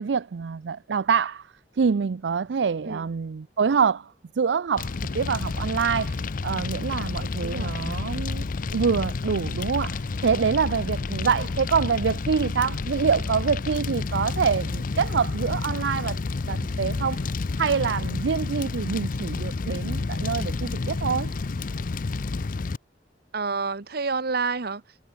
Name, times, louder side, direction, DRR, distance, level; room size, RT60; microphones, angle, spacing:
voice 1, 0.0-16.2 16.5-17.2 17.6-21.3, right 6 dB, 85° right, 0.5 m, -26 dB
Fire, 4.8-22.8, left 3 dB, 50° left, 0.5 m, -30 dB
voice 2, 7.4-7.8 11.4-11.5 23.3-24.8, right 4 dB, 60° right, 1.1 m, -29 dB
sound 1, 12.5-19.2, right 1 dB, 15° right, 7.5 m, -68 dB
head